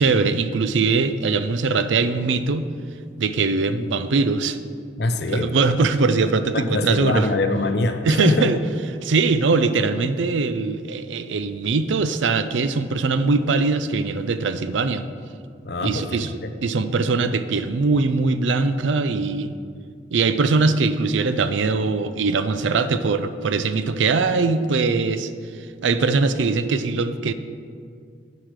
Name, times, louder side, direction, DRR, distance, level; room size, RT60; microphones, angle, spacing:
voice 1, 0.0-2.7 3.2-4.6 5.3-7.3 8.0-8.6 9.0-15.0 15.8-16.3 16.6-19.5 20.1-25.3 25.8-27.3, right 4 dB, 90° right, 12 dB, 0.5 m, -21 dB
voice 2, 5.0-5.5 6.5-8.5 15.6-16.5, left 2 dB, 65° left, 8 dB, 0.6 m, -23 dB
9.4 x 4.9 x 6.5 m, 2.2 s
head